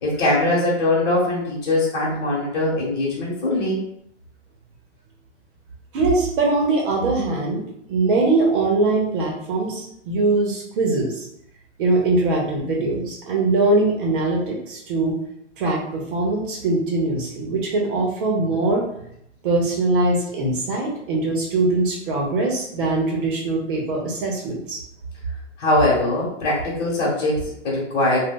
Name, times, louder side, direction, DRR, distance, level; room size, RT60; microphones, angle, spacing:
voice 1, 0.0-3.8 25.6-28.2, left 2 dB, 55° left, -5 dB, 1.2 m, -21 dB
voice 2, 5.9-7.6 7.9-11.3 11.8-15.2 15.6-18.8 19.4-24.8, right 2 dB, 45° right, -1 dB, 0.8 m, -22 dB
2.5 x 2.2 x 3.7 m, 0.74 s
hypercardioid pair, 145°, 36 cm